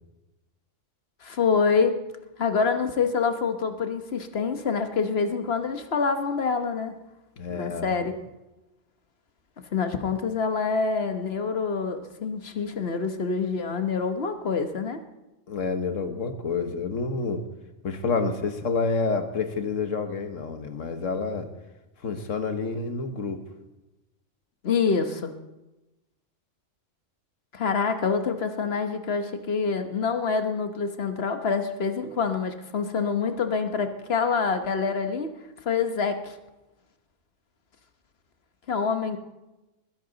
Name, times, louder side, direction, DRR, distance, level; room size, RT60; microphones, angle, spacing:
voice 1, 1.2-2.0 2.4-7.0 7.5-8.1 9.7-15.0 24.6-25.3 27.5-35.3 35.6-36.4 38.7-39.2, left 5 dB, 55° left, 7 dB, 1.3 m, -26 dB
voice 2, 7.4-7.9 15.5-17.4 17.8-21.5 22.0-23.4, left 4 dB, 75° left, 7 dB, 1.6 m, -28 dB
20.5 x 10.5 x 4.0 m, 1.0 s
omnidirectional pair, 1.3 m